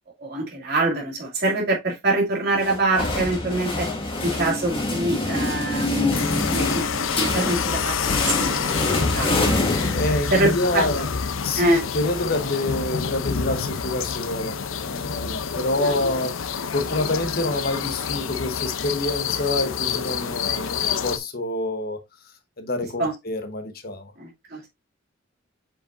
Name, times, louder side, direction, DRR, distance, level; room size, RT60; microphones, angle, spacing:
voice 1, 0.2-3.9 4.2-6.2 6.5-8.5 9.1-9.6 10.3-10.9 11.6-11.8 15.8-16.0 23.0-23.1 24.2-24.6, right 2 dB, 50° right, 2.6 m, -24 dB
sound 1, 2.6-10.5, left 2 dB, 25° left, 1.7 m, -26 dB
sound 2, 6.1-21.2, left 6 dB, 80° left, 0.7 m, -27 dB
voice 2, 9.9-11.1 11.4-22.0 22.6-24.1, left 2 dB, 50° left, 1.1 m, -27 dB
7.5 x 5.1 x 2.6 m
head